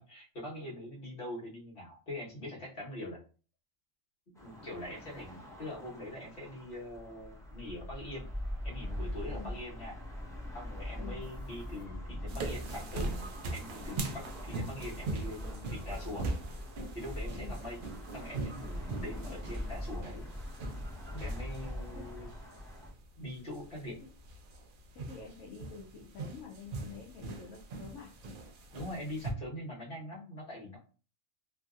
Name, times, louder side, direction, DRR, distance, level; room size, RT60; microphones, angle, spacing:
voice 1, 0.0-3.2 4.4-8.3 8.6-10.0 10.5-13.2 13.5-16.3 16.9-17.8 18.1-20.3 21.1-22.3 23.2-23.9 28.7-30.8, left 1 dB, 50° left, -4 dB, 1.5 m, -43 dB
sound 1, 4.4-22.9, left 1 dB, 5° left, 0.6 m, -42 dB
sound 2, 11.2-22.0, right 2 dB, 20° left, 0.9 m, -62 dB
sound 3, 12.3-29.3, right 3 dB, 60° right, 0.6 m, -42 dB
voice 2, 24.9-28.1, left 5 dB, 80° left, -2 dB, 1.0 m, -48 dB
3.0 x 2.7 x 2.4 m, 0.36 s
omnidirectional pair, 1.3 m